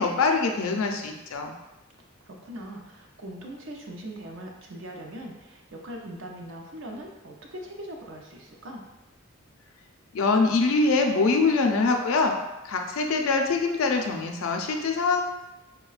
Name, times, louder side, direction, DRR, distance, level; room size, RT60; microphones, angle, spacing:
voice 1, 0.0-1.5 10.1-12.3 12.6-15.2, left 3 dB, 85° left, 3 dB, 0.4 m, -23 dB
voice 2, 2.3-8.8, right 1 dB, 65° right, 1 dB, 0.6 m, -41 dB
4.6 x 2.2 x 2.4 m, 1.0 s
head